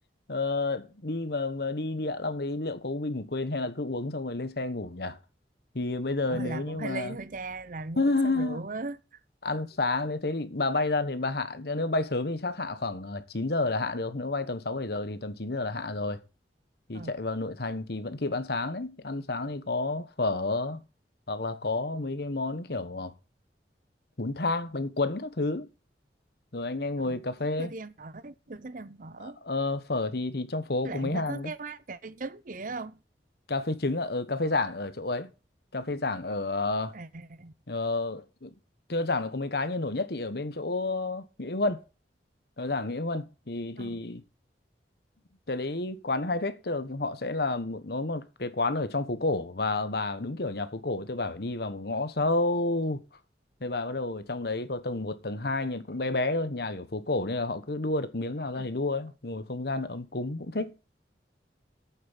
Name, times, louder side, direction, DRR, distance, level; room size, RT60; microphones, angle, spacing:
voice 1, 0.3-5.2 5.7-7.2 8.0-8.6 9.4-16.2 16.9-20.8 21.3-23.1 24.2-25.7 26.5-27.7 29.2-31.5 33.5-35.3 35.7-36.9 37.7-38.5 38.9-41.8 42.6-44.2 45.5-53.0 53.6-60.8, left 2 dB, 60° left, 1.3 m, -30 dB
voice 2, 6.3-9.2 16.9-17.1 27.0-27.2 27.6-29.4 30.8-33.0 36.9-37.5 43.8-44.0 58.6-58.7 60.5-60.6, right 3 dB, 50° right, 0.8 m, -39 dB
8.6 x 7.7 x 8.4 m
head